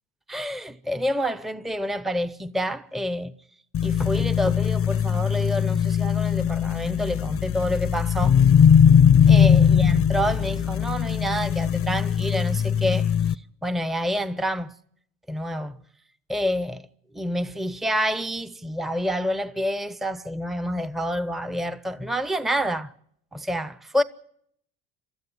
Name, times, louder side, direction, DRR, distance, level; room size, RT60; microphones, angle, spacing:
voice 1, 0.3-3.3 3.8-8.4 9.3-13.1 13.6-14.7 15.3-15.8 16.3-16.8 17.1-22.9 23.3-24.0, equal, ahead, 0.8 m, -28 dB
sound 1, 3.7-13.3, left 8 dB, 35° left, 0.8 m, -20 dB
23.0 x 13.5 x 9.4 m
hypercardioid pair, 65°, 40 cm